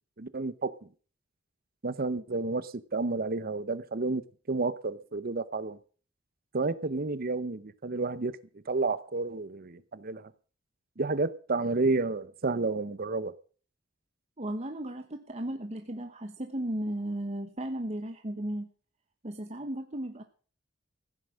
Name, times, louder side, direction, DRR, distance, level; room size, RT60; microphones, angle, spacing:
voice 1, 0.2-0.7 1.8-5.8 6.5-8.4 8.7-10.3 11.0-13.3, right 3 dB, 50° right, 16 dB, 0.8 m, -31 dB
voice 2, 14.4-18.7 19.2-20.2, right 1 dB, 35° right, 6 dB, 1.2 m, -35 dB
15.5 x 9.9 x 6.3 m, 0.41 s
head